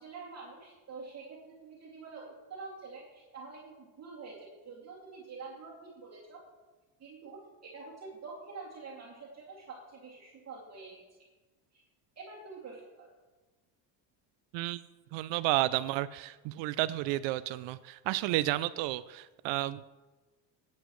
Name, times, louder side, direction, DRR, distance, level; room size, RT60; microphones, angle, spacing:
voice 1, 0.0-6.4 7.0-11.0 11.7-11.8 12.2-13.1, right 4 dB, 35° right, -4 dB, 2.5 m, -47 dB
voice 2, 15.1-19.8, right 16 dB, 65° right, 16 dB, 0.5 m, -31 dB
15.5 x 8.5 x 3.2 m, 1.2 s
supercardioid pair, 105°, 48 cm